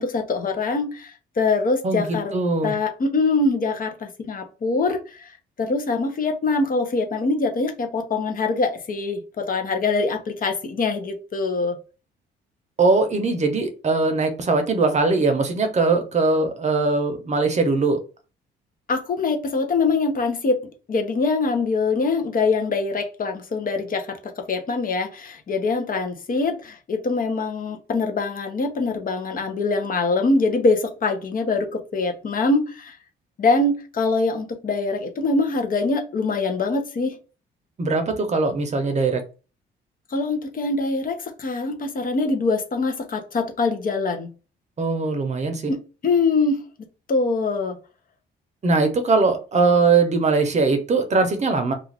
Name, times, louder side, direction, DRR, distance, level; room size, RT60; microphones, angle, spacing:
voice 1, 0.0-2.3 2.6-5.3 5.6-11.8 18.9-33.0 33.4-37.2 40.1-44.3 45.7-46.6 47.1-47.8, left 3 dB, 45° left, 5 dB, 0.7 m, -23 dB
voice 2, 1.8-2.7 12.8-18.0 37.8-39.2 44.8-45.7 48.6-51.7, right 3 dB, 35° right, 6 dB, 0.7 m, -21 dB
2.4 x 2.3 x 3.3 m, 0.33 s
cardioid pair, 90°, 20 cm